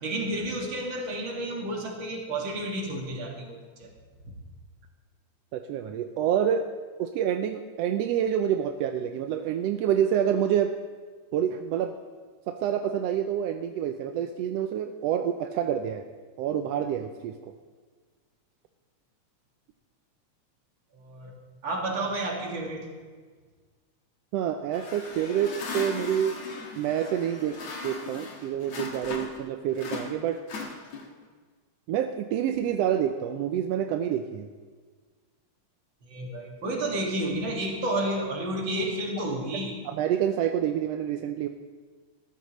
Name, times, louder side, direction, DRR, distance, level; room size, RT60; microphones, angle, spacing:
voice 1, 0.0-3.9 4.2-4.3 20.9-21.3 21.6-22.9 36.1-39.8, right 1 dB, 45° right, 0 dB, 2.7 m, -31 dB
voice 2, 5.5-6.7 7.0-10.7 11.3-11.9 12.5-16.0 16.4-17.3 24.3-26.4 26.8-30.4 31.9-34.5 39.5-41.5, right 9 dB, 80° right, 6 dB, 1.5 m, -27 dB
sound 1, 24.7-29.5 29.8-31.2, left 4 dB, 65° left, 2.7 m, -38 dB
20.0 x 14.0 x 3.1 m, 1.5 s
omnidirectional pair, 3.3 m